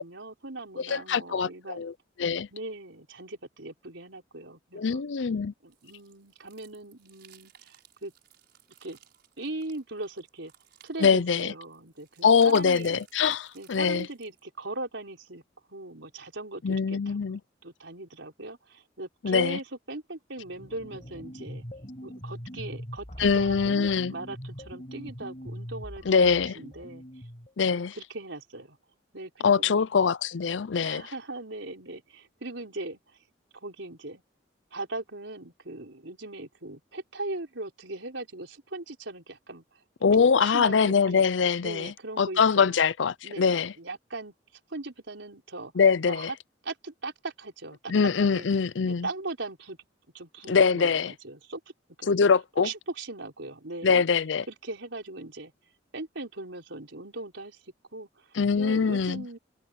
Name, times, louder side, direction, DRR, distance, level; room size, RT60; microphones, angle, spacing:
voice 1, 0.0-1.9 2.5-5.0 5.6-8.1 8.8-9.0 9.4-10.5 10.8-13.0 13.5-15.4 15.7-21.6 22.0-27.0 27.9-28.8 29.1-29.9 30.8-33.0 33.6-34.2 34.7-39.6 40.4-41.2 41.6-42.8 43.2-44.3 44.7-45.7 46.1-46.4 46.6-47.9 48.2-48.5 48.9-49.8 50.1-51.6 52.0-52.1 52.6-54.0 54.5-55.5 55.9-57.6 57.9-59.4, right 2 dB, 80° right, 4.5 m, -39 dB
voice 2, 0.8-1.9 2.2-2.5 4.7-5.5 11.0-11.5 12.2-14.1 16.6-17.4 19.2-19.6 23.2-24.1 26.1-26.6 27.6-28.0 29.4-31.0 40.0-43.7 45.8-46.3 47.9-49.1 50.5-51.1 52.1-52.7 53.8-54.4 58.3-59.2, left 5 dB, 75° left, 0.5 m, -23 dB
sound 1, 5.7-14.4, right 10 dB, 60° right, 6.2 m, -57 dB
sound 2, 20.4-27.5, equal, 35° left, 5.6 m, -42 dB
open air
head